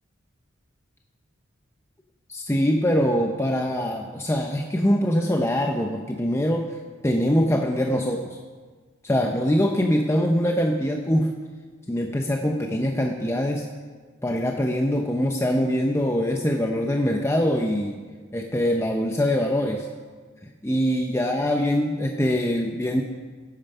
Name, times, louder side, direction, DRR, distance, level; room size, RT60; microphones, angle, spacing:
voice 1, 2.3-6.8 7.0-8.4 9.0-11.3 11.9-13.7 14.2-18.0 18.3-19.9 20.4-23.0, equal, 15° left, 2 dB, 0.6 m, -23 dB
17.0 x 8.9 x 5.5 m, 1.5 s
head